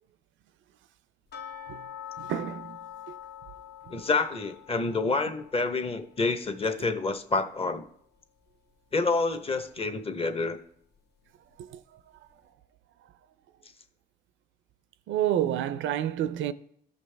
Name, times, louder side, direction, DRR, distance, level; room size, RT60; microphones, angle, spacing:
sound 1, 1.3-8.2 8.5-8.6 9.1-9.2 9.7-9.8, left 10 dB, 55° left, 1.1 m, -46 dB
voice 1, 2.2-2.8 11.6-11.8 15.1-16.5, right 11 dB, 75° right, 0.5 m, -29 dB
voice 2, 3.9-7.8 8.9-10.6, left 3 dB, 30° left, 0.9 m, -28 dB
14.0 x 5.4 x 3.3 m
cardioid pair, 90°, 20 cm